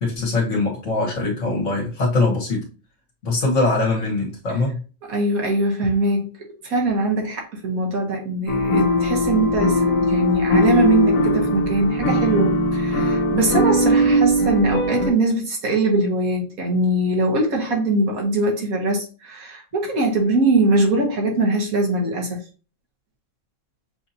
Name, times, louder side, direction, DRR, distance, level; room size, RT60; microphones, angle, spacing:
voice 1, 0.0-2.7 3.2-4.8, left 3 dB, 55° left, 1.7 m, -22 dB
voice 2, 5.1-6.3 6.6-22.4, right 2 dB, 80° right, 1.7 m, -22 dB
sound 1, 8.5-15.1, equal, 75° left, 1.4 m, -19 dB
6.7 x 2.7 x 2.8 m
omnidirectional pair, 1.5 m